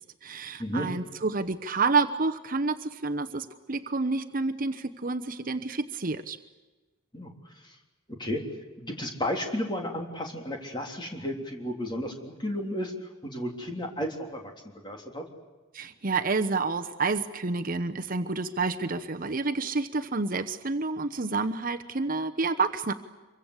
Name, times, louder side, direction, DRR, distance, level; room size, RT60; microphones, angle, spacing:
voice 1, 0.2-6.4 15.7-22.9, right 3 dB, 45° right, 7 dB, 1.0 m, -29 dB
voice 2, 8.8-12.9 13.2-15.2, equal, 20° left, 2 dB, 3.6 m, -33 dB
26.5 x 24.0 x 8.2 m, 1.2 s
head